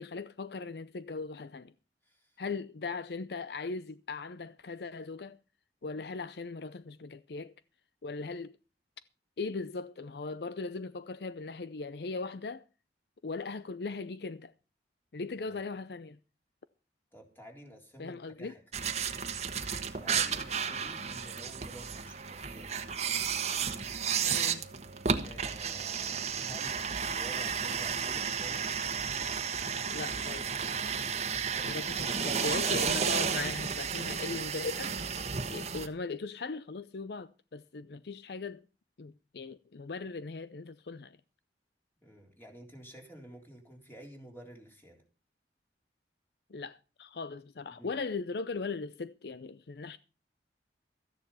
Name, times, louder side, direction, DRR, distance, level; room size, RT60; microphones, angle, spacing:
voice 1, 0.0-1.7 2.4-5.4 5.8-7.5 8.0-8.6 9.4-12.6 13.2-14.5 15.1-16.2 18.0-18.5 24.2-24.7 29.9-30.5 31.6-38.6 39.0-41.2 46.5-50.0, left 4 dB, 65° left, 0.5 m, -39 dB
voice 2, 2.0-2.4 15.4-15.6 17.1-18.6 20.0-22.7 25.0-28.7 31.5-31.7 42.0-45.0 47.7-47.9, equal, 10° left, 3.6 m, -51 dB
sound 1, 18.7-35.9, right 6 dB, 40° right, 1.3 m, -33 dB
14.0 x 10.0 x 5.6 m
head